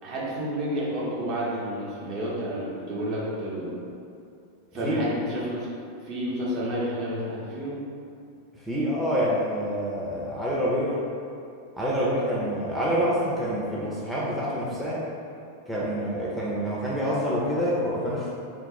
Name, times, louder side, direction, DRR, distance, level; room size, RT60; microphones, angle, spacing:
voice 1, 0.0-3.8 4.7-5.7 6.0-7.8 16.1-16.4, equal, 40° right, -6 dB, 0.7 m, -30 dB
voice 2, 8.5-11.1 11.7-15.1 15.7-18.3, equal, ahead, -8 dB, 0.5 m, -27 dB
2.5 x 2.0 x 3.9 m, 2.4 s
figure-of-eight pair, 90°, 0 cm